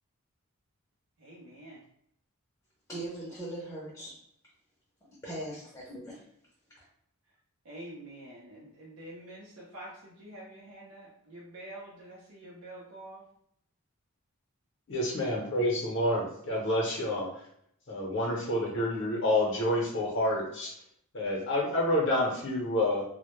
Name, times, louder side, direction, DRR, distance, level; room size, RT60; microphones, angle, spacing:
voice 1, 1.2-1.8 7.6-13.3, right 1 dB, 80° right, -4 dB, 0.5 m, -47 dB
voice 2, 2.9-4.2 5.2-6.3, right 1 dB, 15° left, -6 dB, 0.5 m, -40 dB
voice 3, 14.9-17.3 17.9-20.7 21.1-23.0, left 1 dB, 55° left, -2 dB, 0.6 m, -28 dB
2.1 x 2.0 x 2.9 m, 0.71 s
head